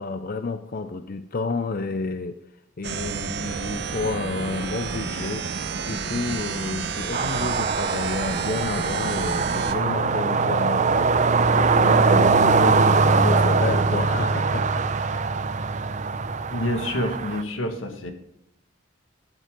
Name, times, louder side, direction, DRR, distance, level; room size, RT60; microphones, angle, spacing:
voice 1, 0.0-2.4 2.8-5.5 5.8-11.1 11.6-15.3, left 3 dB, 45° left, 9 dB, 0.6 m, -30 dB
sound 1, 2.8-9.7, right 5 dB, 55° right, 0.9 m, -30 dB
sound 2, 7.1-17.4, right 4 dB, 40° right, 0.6 m, -22 dB
voice 2, 16.5-18.1, left 1 dB, 90° left, 5 dB, 1.8 m, -27 dB
13.5 x 9.3 x 3.8 m, 0.81 s
head